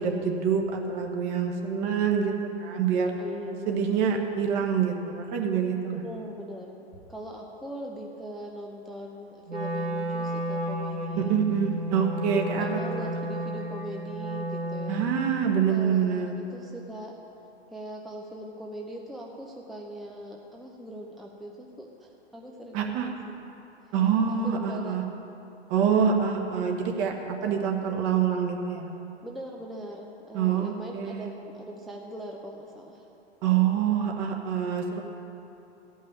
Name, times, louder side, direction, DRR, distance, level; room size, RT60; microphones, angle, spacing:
voice 1, 0.0-2.3 2.6-3.1 3.7-6.0 11.2-13.1 14.9-16.4 22.7-23.1 23.9-25.0 25.7-28.9 30.3-31.3 33.4-35.0, right 7 dB, 40° right, 2 dB, 1.6 m, -26 dB
voice 2, 3.2-4.3 5.9-11.4 12.6-15.0 15.7-17.2 17.7-23.4 24.3-25.0 27.4-27.8 29.2-33.1, equal, ahead, -1 dB, 0.6 m, -41 dB
Wind instrument woodwind instrument, 9.5-15.5, equal, 80° right, 1.6 m, -32 dB
13.5 x 5.5 x 8.8 m, 2.9 s
figure-of-eight pair, 105°, 33 cm